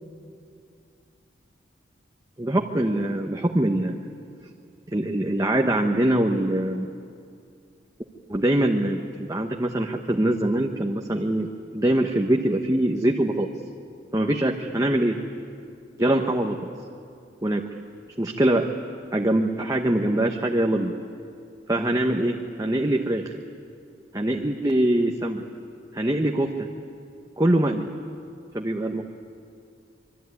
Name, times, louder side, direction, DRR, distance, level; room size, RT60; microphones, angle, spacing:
voice 1, 2.4-4.0 4.9-6.9 8.3-13.5 14.1-15.2 16.0-16.6 17.4-17.7 18.2-18.7 19.1-20.9 21.7-23.3 24.1-25.4 25.9-26.7 27.4-27.9 28.5-29.0, right 1 dB, 20° right, 2 dB, 1.1 m, -23 dB
26.0 x 23.5 x 9.6 m, 2.5 s
head